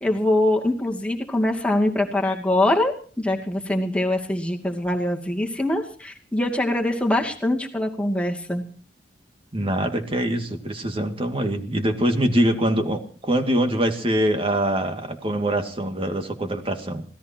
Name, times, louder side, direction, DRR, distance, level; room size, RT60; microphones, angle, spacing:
voice 1, 0.0-8.6, left 1 dB, 5° left, 1 dB, 2.5 m, -23 dB
voice 2, 9.5-17.0, right 1 dB, 30° right, 6 dB, 2.2 m, -24 dB
26.0 x 18.0 x 3.0 m, 0.41 s
head